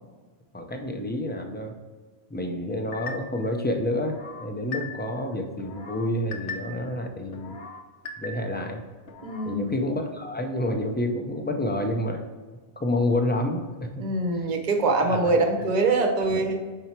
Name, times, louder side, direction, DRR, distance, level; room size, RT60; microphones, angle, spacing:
voice 1, 0.5-1.7 2.3-7.6 8.2-8.8 9.4-12.3 12.8-14.1 15.1-15.4 16.3-16.4, left 1 dB, 15° left, 4 dB, 0.4 m, -29 dB
sound 1, 2.9-3.5 4.0-5.2 5.6-6.9 7.3-8.7 9.1-9.6, left 4 dB, 75° left, 1.1 m, -40 dB
voice 2, 9.2-9.8 14.0-16.6, right 3 dB, 40° right, 3 dB, 0.9 m, -24 dB
5.4 x 4.6 x 4.3 m, 1.4 s
omnidirectional pair, 1.2 m